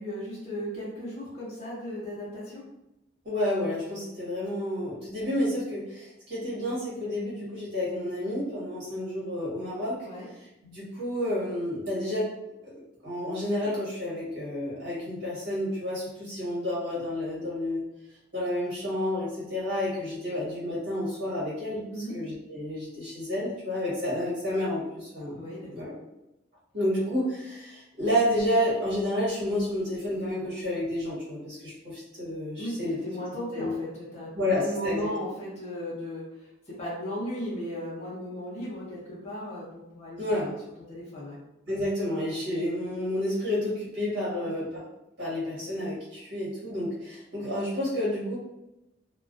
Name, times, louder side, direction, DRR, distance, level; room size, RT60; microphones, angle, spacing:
voice 1, 0.0-2.6 10.0-10.3 21.9-22.1 25.3-25.9 32.6-36.2 36.7-40.6 40.9-41.4 44.3-44.4, equal, 35° left, -8 dB, 0.6 m, -36 dB
voice 2, 3.2-10.0 10.6-12.3 12.6-17.8 18.3-21.8 22.1-25.4 25.7-25.9 26.7-33.0 33.5-33.7 34.3-35.1 40.2-40.5 41.7-44.8 45.2-48.4, left 1 dB, 60° right, -7 dB, 1.1 m, -30 dB
2.3 x 2.2 x 2.4 m, 0.92 s
head